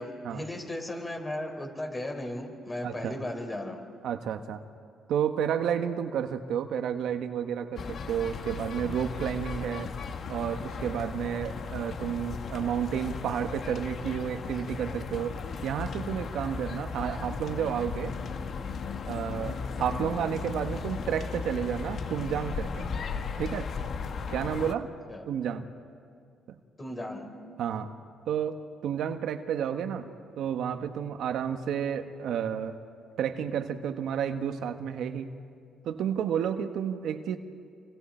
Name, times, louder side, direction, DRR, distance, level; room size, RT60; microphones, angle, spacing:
voice 1, 0.0-3.8 25.1-25.3 26.8-27.3, left 1 dB, 20° left, 4 dB, 4.0 m, -36 dB
voice 2, 2.8-3.2 4.0-4.6 5.1-9.9 10.3-18.1 19.0-22.9 23.4-23.7 24.3-24.9 25.3-25.7 27.6-27.9 28.3-30.1 30.4-32.7 33.2-35.3 35.8-37.4, right 8 dB, 80° right, 7 dB, 1.2 m, -31 dB
sound 1, 7.8-24.7, left 5 dB, 55° left, 1.3 m, -36 dB
29.0 x 25.0 x 4.4 m, 2.2 s
cardioid pair, 90°, 0 cm